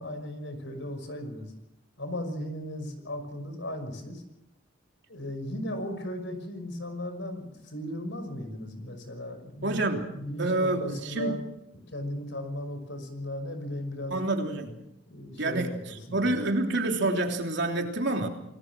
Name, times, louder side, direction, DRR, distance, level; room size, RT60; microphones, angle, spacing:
voice 1, 0.0-1.5 2.0-4.2 5.1-11.4 11.9-14.2 15.1-16.3, left 1 dB, 65° left, 8 dB, 5.8 m, -36 dB
voice 2, 9.6-10.1 10.4-11.3 14.1-14.7 15.4-18.3, right 2 dB, 60° right, 3 dB, 3.3 m, -28 dB
28.0 x 20.0 x 6.2 m, 0.84 s
head